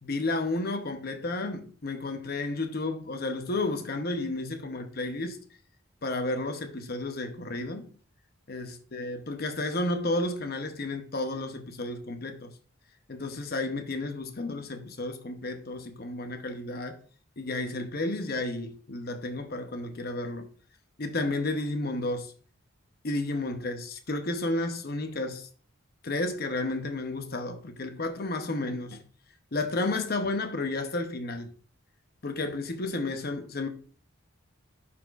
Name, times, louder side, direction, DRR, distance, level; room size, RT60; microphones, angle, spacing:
voice 1, 0.0-5.4 6.0-7.9 8.5-12.5 13.1-17.0 17.4-20.5 21.0-22.3 23.0-25.5 26.0-29.0 29.5-31.5 32.2-33.7, left 2 dB, 45° left, 0.8 m, -32 dB
11.5 x 4.3 x 2.5 m
head